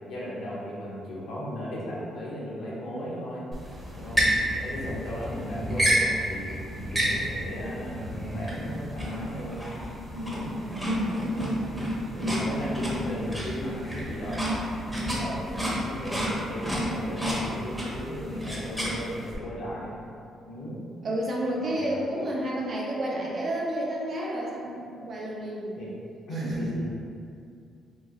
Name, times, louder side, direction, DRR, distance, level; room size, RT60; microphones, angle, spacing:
voice 1, 0.1-3.5 3.9-4.2 4.5-6.5 6.9-9.6 10.2-10.5 12.2-20.0 20.4-20.8 21.6-22.0 25.8-25.9 26.3-26.9, equal, 75° left, -7 dB, 0.8 m, -36 dB
sound 1, 3.5-19.3, equal, 5° right, 0.7 m, -30 dB
voice 2, 10.4-11.7 12.1-12.9 21.0-25.7 26.3-26.7, right 1 dB, 50° right, -3 dB, 0.6 m, -32 dB
2.9 x 2.7 x 2.5 m, 2.4 s
cardioid pair, 90°, 0 cm